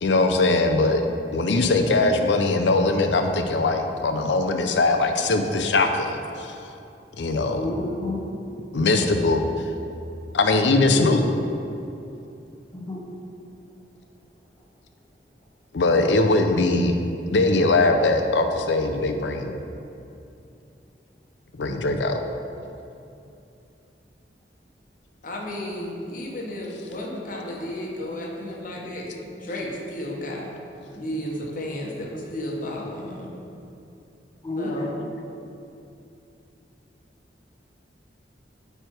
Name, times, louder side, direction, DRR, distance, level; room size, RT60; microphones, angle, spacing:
voice 1, 0.0-1.0 1.3-6.5 7.2-7.7 8.7-9.4 10.3-11.2 15.7-17.0 17.3-19.6 21.6-22.2, left 2 dB, 80° left, 5 dB, 0.6 m, -21 dB
voice 2, 7.6-8.2 10.9-11.1 12.7-13.0 34.4-34.9, left 2 dB, 20° left, -2 dB, 0.7 m, -29 dB
voice 3, 25.2-30.5 30.9-33.3 34.5-35.0, left 1 dB, 50° left, -1 dB, 1.0 m, -33 dB
9.0 x 3.4 x 4.5 m, 2.7 s
head